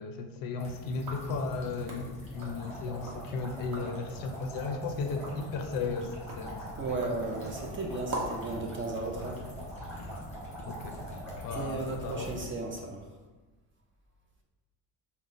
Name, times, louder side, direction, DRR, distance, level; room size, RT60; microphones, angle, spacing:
voice 1, 0.0-6.7 10.6-11.0 11.4-12.3, left 4 dB, 55° left, 5 dB, 0.5 m, -35 dB
sound 1, 0.6-12.4, left 1 dB, 15° left, 1.2 m, -45 dB
sound 2, 0.9-3.2 3.6-4.0 4.5-8.5, right 1 dB, 50° right, 1.0 m, -44 dB
sound 3, 2.3-12.3, right 1 dB, 5° right, 1.0 m, -45 dB
voice 2, 6.8-9.4 11.5-13.0, right 3 dB, 30° right, 0 dB, 0.4 m, -35 dB
4.8 x 2.1 x 3.8 m, 1.2 s
cardioid pair, 165°, 41 cm